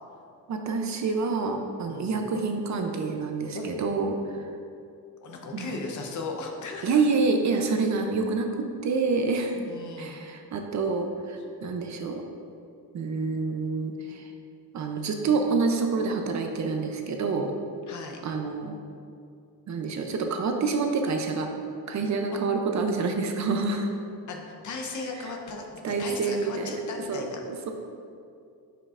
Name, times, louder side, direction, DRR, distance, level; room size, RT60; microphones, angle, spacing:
voice 1, 0.5-4.5 5.5-5.7 6.8-9.6 10.0-12.2 12.9-14.3 14.7-17.5 18.2-18.8 19.7-21.5 21.9-23.9 25.8-26.8 27.1-27.7, right 4 dB, 50° right, 4 dB, 0.6 m, -27 dB
voice 2, 1.9-2.2 3.5-3.7 5.2-7.0 9.5-10.2 17.9-18.2 22.3-22.4 24.3-25.7 26.0-27.4, left 3 dB, 50° left, 2 dB, 0.8 m, -37 dB
9.5 x 5.5 x 2.5 m, 2.5 s
wide cardioid pair, 180°, 38 cm